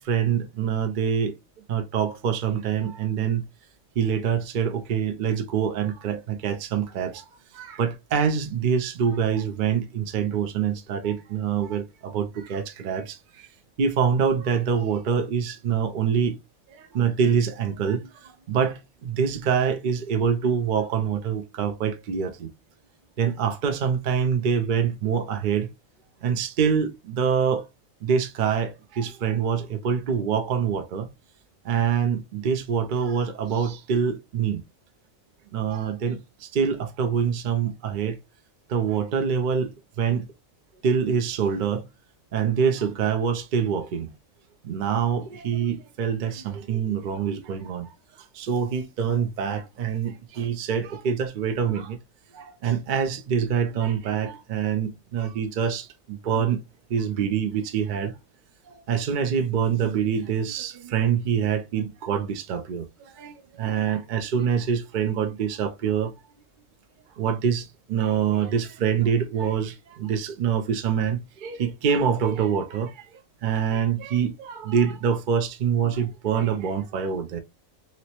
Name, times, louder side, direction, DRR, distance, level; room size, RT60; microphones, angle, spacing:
voice 1, 0.0-1.3 1.7-3.4 4.0-7.1 7.6-13.1 13.8-16.3 16.9-18.0 18.5-18.8 19.0-22.3 23.2-25.7 26.2-27.6 28.0-28.7 29.0-31.1 31.7-34.6 35.5-36.2 36.5-38.1 38.7-39.7 40.0-40.2 40.8-41.8 42.3-44.1 44.7-47.9 48.4-52.0 52.6-55.8 56.3-56.6 56.9-58.1 58.9-62.8 63.2-63.3 63.6-66.1 67.2-67.6 67.9-69.7 70.0-72.9 73.4-77.4, right 7 dB, 65° right, 0.5 m, -25 dB
3.0 x 2.9 x 2.8 m
omnidirectional pair, 1.4 m